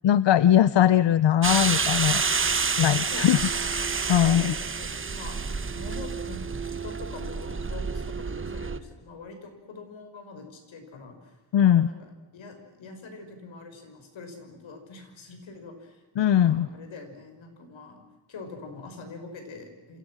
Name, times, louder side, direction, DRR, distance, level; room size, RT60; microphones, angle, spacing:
voice 1, 0.0-2.3 2.8-3.4 4.1-4.5 11.5-11.9 16.2-16.7, left 10 dB, 70° left, 16 dB, 0.8 m, -20 dB
sound 1, 1.4-8.8, right 5 dB, 25° right, 1.1 m, -29 dB
voice 2, 3.1-3.6 4.2-11.4 11.7-20.0, left 3 dB, 90° left, 5 dB, 5.9 m, -44 dB
29.0 x 28.5 x 6.2 m, 1.2 s
wide cardioid pair, 145°, 45 cm